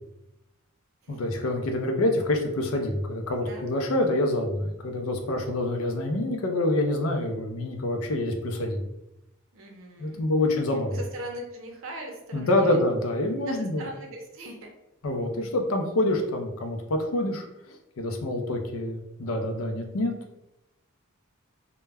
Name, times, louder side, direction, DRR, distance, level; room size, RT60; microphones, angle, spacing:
voice 1, 1.1-8.8 10.0-10.9 12.3-13.8 15.0-20.1, left 1 dB, 75° left, 3 dB, 0.5 m, -26 dB
voice 2, 3.4-3.7 9.5-12.8 13.4-14.7, right 1 dB, 65° right, 2 dB, 0.6 m, -40 dB
2.2 x 2.1 x 3.3 m, 0.91 s
head